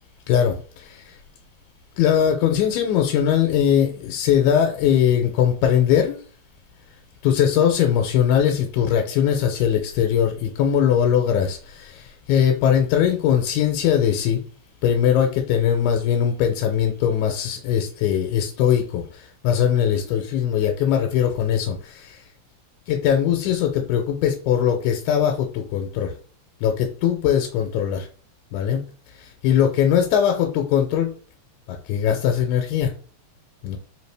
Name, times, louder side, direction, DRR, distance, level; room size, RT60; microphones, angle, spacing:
voice 1, 0.3-1.2 2.0-6.2 7.2-14.4 14.8-22.2 22.9-26.1 26.6-28.1 28.5-28.8 29.2-31.1 31.7-32.9 33.6-33.8, left 9 dB, 90° left, 2.0 m, -20 dB
4.7 x 2.8 x 3.2 m
omnidirectional pair, 3.3 m